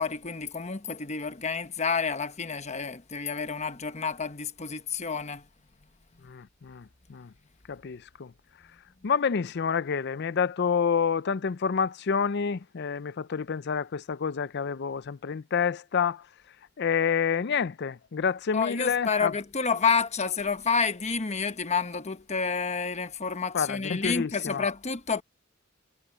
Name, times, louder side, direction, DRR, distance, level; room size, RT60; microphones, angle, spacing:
voice 1, 0.0-5.4 18.5-25.2, left 5 dB, 35° left, 1.1 m, -29 dB
voice 2, 6.2-7.3 7.7-8.3 9.0-16.2 16.8-19.3 23.5-24.6, left 6 dB, 55° left, 0.5 m, -28 dB
head